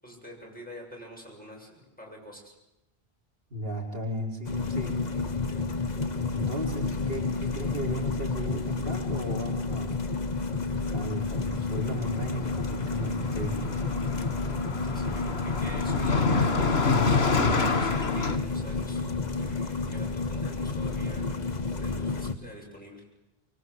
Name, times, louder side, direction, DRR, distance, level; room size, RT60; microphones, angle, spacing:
voice 1, 0.0-2.6 14.8-19.0 19.4-21.3 21.8-23.0, equal, 10° left, -1 dB, 7.5 m, -45 dB
voice 2, 3.5-5.0 6.3-10.0 10.9-13.9, equal, 65° right, -2 dB, 5.3 m, -35 dB
sound 1, 4.4-22.3, left 3 dB, 45° left, 1.4 m, -30 dB
Car passing by, 10.9-11.1 11.4-18.4, left 4 dB, 85° left, 2.0 m, -28 dB
25.0 x 24.0 x 8.2 m, 0.93 s
omnidirectional pair, 1.0 m